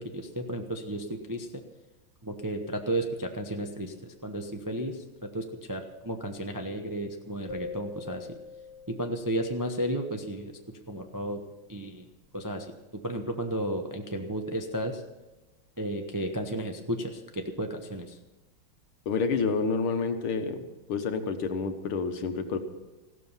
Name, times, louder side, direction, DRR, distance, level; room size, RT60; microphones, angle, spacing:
voice 1, 0.0-1.6 2.2-8.3 8.9-10.5 10.9-11.4 11.7-12.0 12.3-12.7 13.0-15.0 15.8-18.2, right 1 dB, 25° right, 4 dB, 0.4 m, -33 dB
sound 1, 7.5-9.7, left 3 dB, 55° left, 2.5 m, -43 dB
voice 2, 19.1-20.6 20.9-22.6, left 5 dB, 90° left, 7 dB, 2.1 m, -28 dB
15.5 x 12.5 x 5.6 m, 1.1 s
omnidirectional pair, 2.2 m